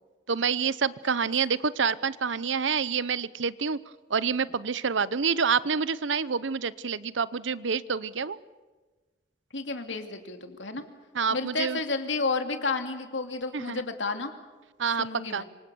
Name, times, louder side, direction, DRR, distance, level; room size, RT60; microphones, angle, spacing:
voice 1, 0.3-3.8 4.1-8.4 11.1-11.8 13.5-13.8 14.8-15.1 15.3-15.4, right 6 dB, 85° right, 17 dB, 0.8 m, -27 dB
voice 2, 9.5-10.8 11.3-14.3 15.0-15.4, left 3 dB, 80° left, 6 dB, 2.6 m, -31 dB
27.0 x 25.0 x 7.0 m, 1.3 s
head